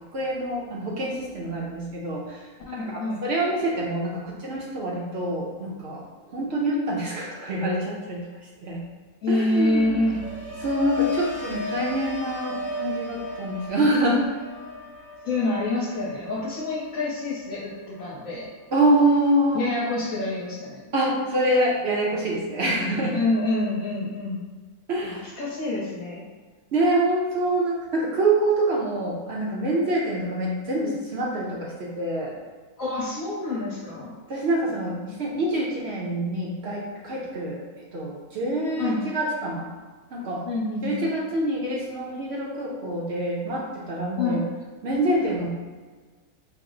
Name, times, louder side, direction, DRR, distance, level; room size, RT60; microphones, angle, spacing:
voice 1, 0.1-2.4 2.8-8.2 8.6-8.8 9.3-10.2 10.6-14.2 18.7-19.7 20.9-23.2 24.9-25.4 26.7-32.3 34.3-37.6 37.9-39.7 40.1-40.4 40.8-44.4 44.8-45.5, right 1 dB, 60° right, -4 dB, 0.7 m, -26 dB
voice 2, 2.7-3.2 9.2-10.2 15.2-18.5 19.5-20.9 23.1-24.4 25.0-26.2 32.8-34.1 38.8-39.0 40.4-41.0 44.2-44.4, left 2 dB, 65° left, -7 dB, 1.1 m, -27 dB
sound 1, 9.7-19.8 20.1-20.6, left 1 dB, 15° right, 0.7 m, -36 dB
4.6 x 2.0 x 3.7 m, 1.4 s
omnidirectional pair, 1.6 m